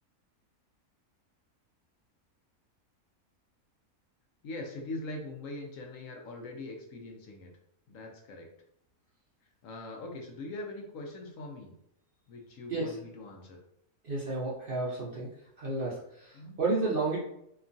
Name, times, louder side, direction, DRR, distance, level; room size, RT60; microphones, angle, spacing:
voice 1, 4.4-7.5 7.9-8.5 9.6-11.7 12.3-13.6 16.3-16.6, left 2 dB, 70° left, 1 dB, 0.9 m, -42 dB
voice 2, 14.0-15.3 15.6-17.2, right 3 dB, 55° right, -6 dB, 0.6 m, -31 dB
2.9 x 2.3 x 2.5 m, 0.75 s
omnidirectional pair, 1.5 m